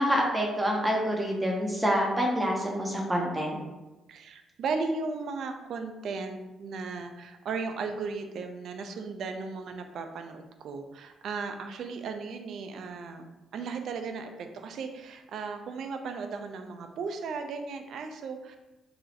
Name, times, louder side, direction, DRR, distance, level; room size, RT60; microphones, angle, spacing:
voice 1, 0.0-3.6, equal, 10° right, -1 dB, 0.7 m, -27 dB
voice 2, 4.1-18.6, right 4 dB, 65° right, 6 dB, 0.3 m, -36 dB
3.9 x 2.0 x 2.7 m, 1.1 s
hypercardioid pair, 45°, 0 cm